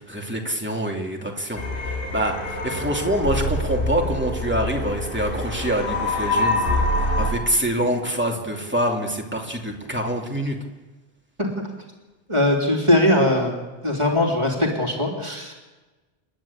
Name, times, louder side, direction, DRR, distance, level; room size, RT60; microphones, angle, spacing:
voice 1, 0.0-10.6, right 1 dB, 10° right, 0 dB, 2.7 m, -26 dB
sound 1, 1.5-7.3, left 1 dB, 55° left, 2.8 m, -25 dB
voice 2, 12.3-13.5 13.8-15.5, left 1 dB, 25° right, 0 dB, 3.2 m, -20 dB
29.5 x 10.5 x 8.7 m, 1.2 s
omnidirectional pair, 1.1 m